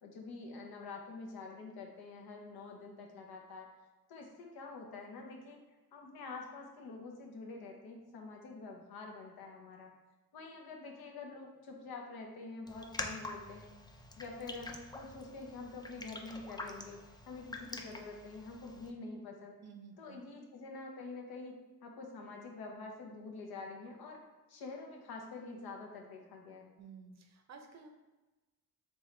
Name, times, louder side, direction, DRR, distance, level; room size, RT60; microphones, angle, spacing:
voice 1, 0.0-3.7 4.1-5.6 5.9-9.9 10.3-13.7 14.2-17.0 17.3-19.5 20.0-24.2 24.5-26.7, left 3 dB, 75° left, 1 dB, 0.8 m, -47 dB
Raindrop, 12.7-18.9, left 2 dB, 10° left, 0.3 m, -46 dB
voice 2, 19.6-20.2 26.8-27.9, right 5 dB, 45° right, 5 dB, 0.6 m, -53 dB
3.5 x 3.0 x 3.2 m, 1.1 s
cardioid pair, 80°, 37 cm